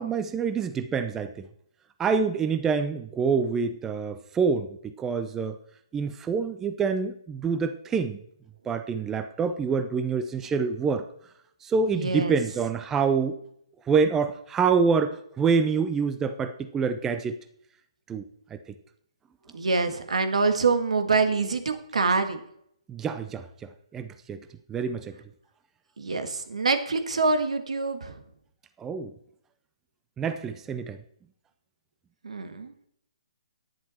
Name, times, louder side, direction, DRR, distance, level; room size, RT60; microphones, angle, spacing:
voice 1, 0.0-1.5 2.0-5.6 5.9-8.2 8.6-11.1 11.6-13.4 13.9-17.4 18.1-18.2 18.5-18.6 22.9-24.4 24.7-25.2 28.8-29.1 30.2-31.0, right 5 dB, 10° right, 9 dB, 0.5 m, -26 dB
voice 2, 11.9-12.4 19.5-22.4 26.0-28.1 32.2-32.7, right 4 dB, 80° right, 8 dB, 1.6 m, -25 dB
10.5 x 9.7 x 4.3 m, 0.70 s
hypercardioid pair, 150°, 3 cm